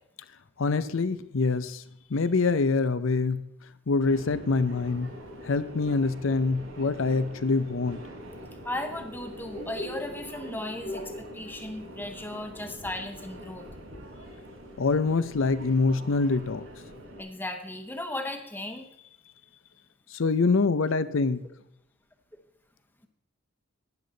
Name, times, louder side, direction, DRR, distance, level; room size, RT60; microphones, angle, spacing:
voice 1, 0.6-1.8 2.1-3.4 3.9-5.1 5.4-8.0 14.8-16.7 20.1-21.4, left 4 dB, 70° left, 14 dB, 0.6 m, -25 dB
Subway metro underground, 4.1-17.2, equal, 75° right, 5.1 m, -43 dB
voice 2, 8.6-13.7 17.2-18.9, left 1 dB, 10° left, 5 dB, 1.0 m, -36 dB
11.5 x 10.0 x 3.9 m, 0.76 s
head